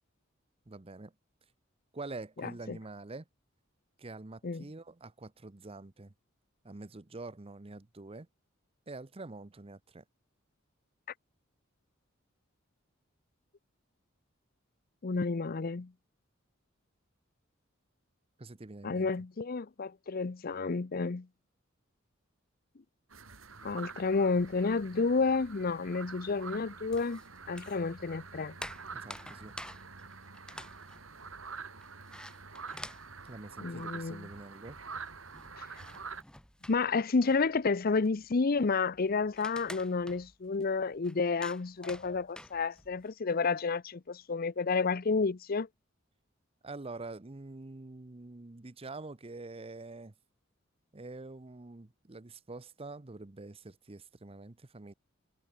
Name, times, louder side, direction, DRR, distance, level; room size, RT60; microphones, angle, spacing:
voice 1, 0.7-1.1 1.9-3.2 4.0-6.1 6.6-8.3 8.9-10.0 18.4-19.1 28.9-29.5 33.3-34.8 46.6-50.1 50.9-54.9, right 3 dB, 30° right, 0.8 m, -46 dB
voice 2, 2.4-2.8 4.4-4.6 15.0-15.9 18.8-21.3 23.6-27.2 27.5-28.5 33.6-34.3 36.7-45.7, left 4 dB, 45° left, 0.6 m, -30 dB
sound 1, 23.1-36.2, right 5 dB, 85° right, 4.9 m, -47 dB
sound 2, 26.9-27.9 28.2-34.1 34.4-34.5 34.7-43.1, left 1 dB, 5° left, 2.1 m, -50 dB
head